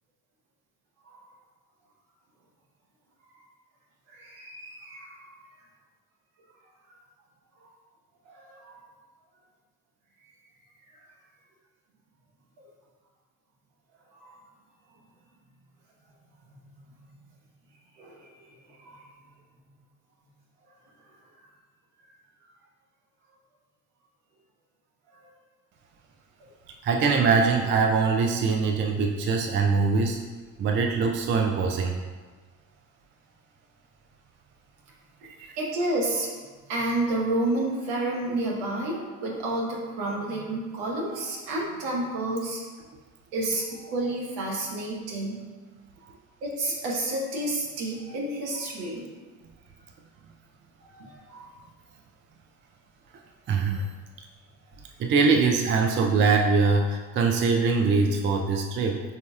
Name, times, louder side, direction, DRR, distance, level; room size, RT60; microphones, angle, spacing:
voice 1, 4.1-5.3 7.6-7.7 8.3-8.9 14.1-14.3 18.0-18.3 18.7-19.0 35.6-36.3 36.7-42.6 43.3-45.5 46.4-49.0 50.9-51.5, right 2 dB, 60° right, -2 dB, 1.1 m, -30 dB
voice 2, 26.8-30.2 30.6-32.0 35.2-35.6 53.5-53.8 55.0-59.0, right 4 dB, 30° right, 3 dB, 0.4 m, -23 dB
5.4 x 4.0 x 2.3 m, 1.4 s
figure-of-eight pair, 45°, 42 cm